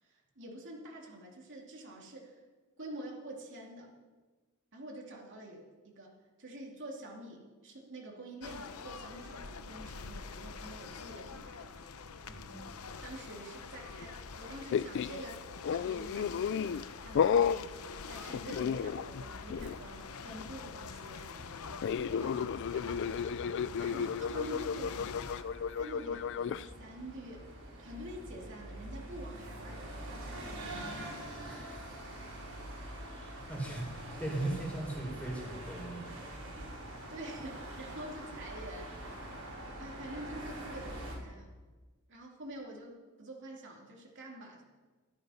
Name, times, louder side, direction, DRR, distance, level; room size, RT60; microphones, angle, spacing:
voice 1, 0.0-2.4 2.8-3.9 4.7-11.7 13.0-21.7 22.1-23.1 23.7-25.3 25.8-27.4 27.8-30.6 36.5-36.8 37.1-39.0 39.8-41.5 42.1-44.6, right 1 dB, 60° right, -1 dB, 2.5 m, -47 dB
sound 1, 8.4-25.4, left 5 dB, 90° left, 0.8 m, -45 dB
voice 2, 12.3-12.7 31.4-32.0 32.9-36.2, right 2 dB, 5° left, -2 dB, 3.8 m, -39 dB
sound 2, 14.7-15.2 15.6-16.8 17.2-17.6 18.3-19.2 19.5-19.8 21.8-26.7, left 7 dB, 55° left, 0.3 m, -32 dB
sound 3, 25.3-41.2, right 1 dB, 90° right, 5.5 m, -45 dB
13.0 x 13.0 x 5.6 m, 1.3 s
head